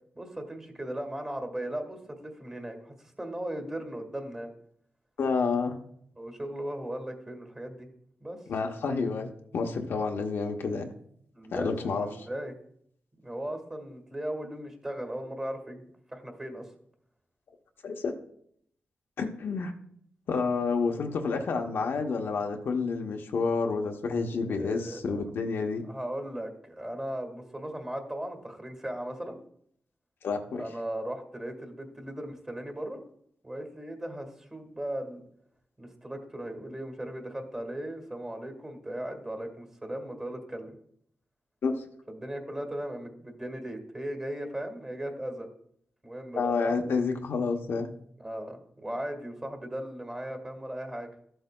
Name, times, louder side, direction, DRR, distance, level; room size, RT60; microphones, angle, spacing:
voice 1, 0.1-4.5 6.2-7.9 8.2-8.4 11.3-12.5 13.1-16.7 24.4-25.2 25.8-29.4 30.5-33.0 33.4-35.2 35.8-40.8 42.1-45.5 46.0-46.8 48.2-51.1, right 1 dB, 20° right, 4 dB, 1.7 m, -37 dB
voice 2, 5.2-5.7 8.5-10.9 11.5-12.1 17.8-18.1 19.2-19.7 20.3-25.8 30.2-30.6 41.6-41.7 46.4-47.9, left 4 dB, 80° left, 3 dB, 0.8 m, -29 dB
13.0 x 7.9 x 2.2 m, 0.68 s
wide cardioid pair, 125°, 4 cm